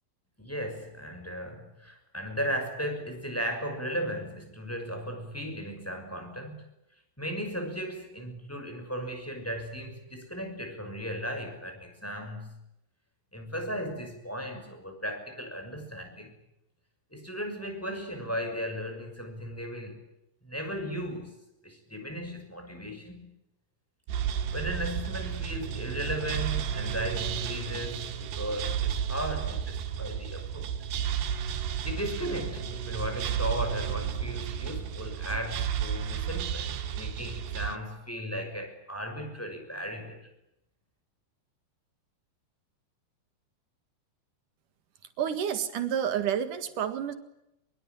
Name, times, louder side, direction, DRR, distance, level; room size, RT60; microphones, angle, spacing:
voice 1, 0.4-6.6 7.2-12.6 13.3-16.3 17.1-20.0 20.4-21.4 21.6-23.3 24.5-30.7 31.8-40.3, equal, 5° left, 4 dB, 5.6 m, -36 dB
sound 1, 24.1-37.8, right 8 dB, 75° right, 3.6 m, -32 dB
voice 2, 45.2-47.1, right 9 dB, 60° right, 10 dB, 3.1 m, -29 dB
24.5 x 23.0 x 9.3 m, 0.85 s
omnidirectional pair, 4.8 m